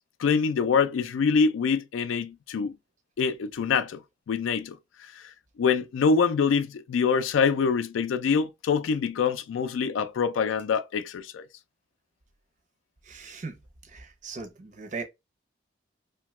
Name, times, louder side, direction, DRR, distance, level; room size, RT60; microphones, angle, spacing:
voice 1, 0.2-2.8 3.2-4.0 4.3-4.8 5.2-5.3 5.6-11.5, left 5 dB, 80° left, 0.3 m, -25 dB
voice 2, 13.1-13.6 13.9-15.0, right 4 dB, 40° right, 0.6 m, -38 dB
2.9 x 2.2 x 3.0 m
head